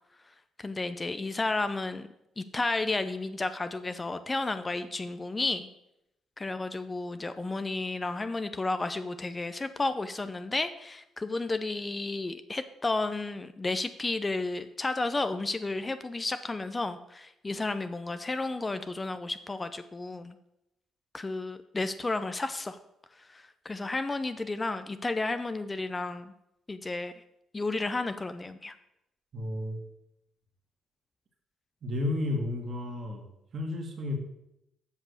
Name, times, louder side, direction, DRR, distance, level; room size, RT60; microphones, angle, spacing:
voice 1, 0.6-2.1 2.4-5.7 6.4-20.4 21.1-22.8 23.3-26.3 26.7-27.1 27.5-28.7, left 2 dB, 25° left, 10 dB, 0.6 m, -32 dB
voice 2, 29.3-29.8 31.8-33.2 33.5-34.2, left 2 dB, 55° right, 3 dB, 1.9 m, -32 dB
7.4 x 5.5 x 6.5 m, 0.83 s
hypercardioid pair, 50°, 0 cm